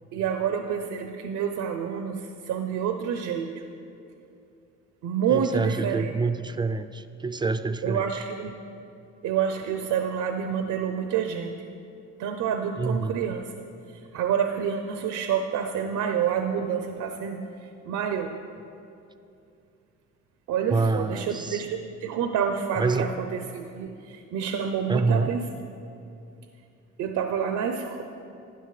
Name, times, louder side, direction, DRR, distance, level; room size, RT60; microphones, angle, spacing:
voice 1, 0.1-3.5 5.0-6.1 7.8-8.5 9.2-11.5 12.2-13.4 14.1-17.4 17.8-18.3 20.5-25.4 27.0-28.0, right 7 dB, 80° right, 5 dB, 0.6 m, -28 dB
voice 2, 5.3-8.1 12.8-13.2 20.7-21.6 22.8-23.1 24.9-25.3, right 3 dB, 15° right, 10 dB, 0.3 m, -26 dB
12.5 x 9.8 x 3.2 m, 2.6 s
cardioid pair, 90°, 30 cm